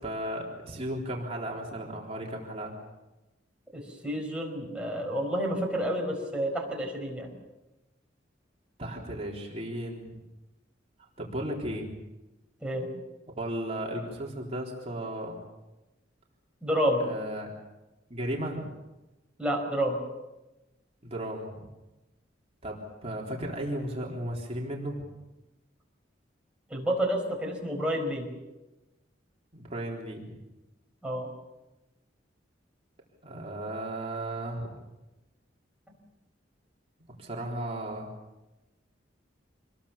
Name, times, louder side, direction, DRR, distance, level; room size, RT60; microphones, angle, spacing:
voice 1, 0.0-2.7 8.8-10.2 11.2-12.0 13.4-15.4 17.0-17.5 18.1-18.7 21.0-21.5 22.6-25.0 29.5-30.4 33.2-34.8 37.2-38.1, right 1 dB, 35° right, -1 dB, 3.8 m, -35 dB
voice 2, 3.7-7.3 12.6-12.9 16.6-17.0 19.4-20.0 26.7-28.3 31.0-31.3, equal, 5° right, 0 dB, 5.2 m, -29 dB
26.5 x 21.5 x 7.2 m, 1.0 s
head